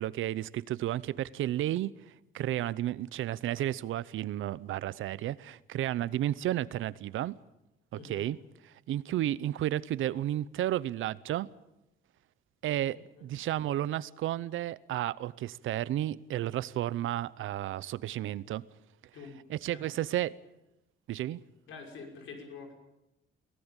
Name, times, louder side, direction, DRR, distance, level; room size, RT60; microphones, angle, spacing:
voice 1, 0.0-1.9 2.3-7.3 7.9-8.4 8.9-11.5 12.6-18.6 19.5-20.4 21.1-21.4, right 13 dB, 80° right, 0.8 m, -32 dB
voice 2, 7.9-8.3 13.2-13.3 19.1-19.4 21.7-22.7, left 4 dB, 85° left, 5.8 m, -46 dB
23.5 x 17.5 x 8.9 m
cardioid pair, 180°, 20 cm